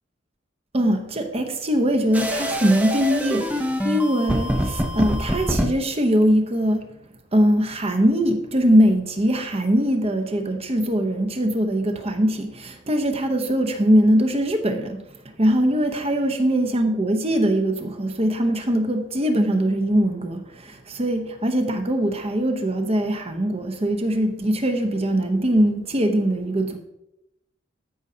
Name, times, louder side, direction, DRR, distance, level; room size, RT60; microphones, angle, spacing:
voice 1, 0.7-6.9 7.3-26.8, equal, 30° right, 0.9 m, -21 dB
sound 1, 2.1-5.7, equal, 10° right, 0.7 m, -25 dB
13.5 x 5.4 x 2.8 m
head